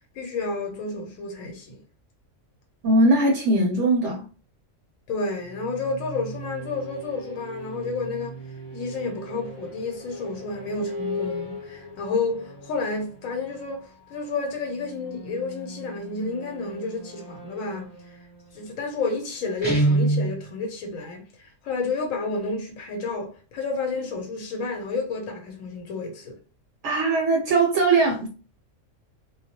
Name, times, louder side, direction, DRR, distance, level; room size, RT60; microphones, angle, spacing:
voice 1, 0.1-1.8 5.1-18.3 18.5-26.3, left 3 dB, 80° left, 1.0 m, -31 dB
voice 2, 2.8-4.2 26.8-28.3, right 2 dB, 70° right, 0.8 m, -20 dB
sound 1, 5.4-20.0, equal, 40° left, 0.4 m, -40 dB
Guitar, 19.6-20.4, right 2 dB, 15° left, 1.0 m, -21 dB
2.2 x 2.0 x 2.7 m
omnidirectional pair, 1.4 m